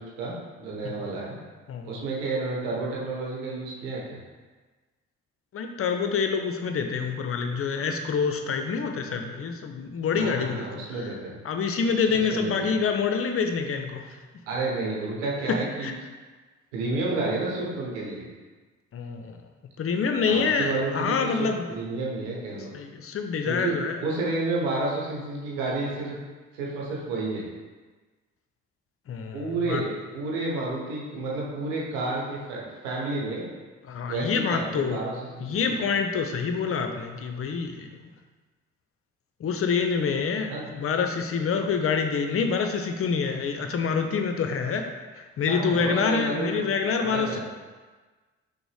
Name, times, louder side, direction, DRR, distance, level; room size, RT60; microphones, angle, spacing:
voice 1, 0.0-1.4 1.8-4.2 9.0-9.2 10.2-11.4 12.1-12.7 14.5-15.9 16.7-18.3 20.2-22.7 23.4-23.7 24.0-26.2 26.5-27.4 29.3-33.5 34.1-35.9 40.5-40.7 45.5-46.6 47.0-47.4, right 2 dB, 80° right, -3 dB, 0.9 m, -31 dB
voice 2, 5.5-10.6 11.4-14.1 15.8-15.9 18.9-19.4 19.8-21.7 22.7-23.9 29.1-29.8 33.9-35.0 35.4-37.9 39.4-44.9 45.1-47.4, left 5 dB, 40° left, 5 dB, 0.5 m, -26 dB
5.9 x 2.1 x 3.3 m, 1.3 s
hypercardioid pair, 40°, 36 cm